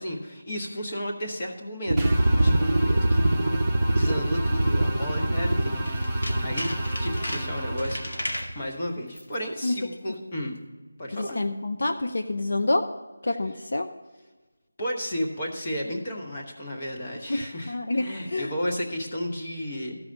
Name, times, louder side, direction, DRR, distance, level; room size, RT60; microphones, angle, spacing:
voice 1, 0.0-3.3 3.9-6.7 7.0-8.0 8.5-10.5 11.0-11.4 14.8-20.0, equal, 20° left, 1 dB, 0.9 m, -33 dB
sound 1, 1.9-8.6, right 1 dB, 60° right, 0.5 m, -24 dB
sound 2, 2.0-8.5, right 1 dB, ahead, 0.5 m, -37 dB
Tools, 5.8-8.6 9.1-9.4 9.7-9.8, left 1 dB, 70° left, 1.7 m, -35 dB
voice 2, 11.1-12.9 13.2-13.9 17.3-18.5, left 2 dB, 50° left, 6 dB, 0.5 m, -27 dB
13.5 x 4.8 x 6.3 m, 1.3 s
figure-of-eight pair, 180°, 0 cm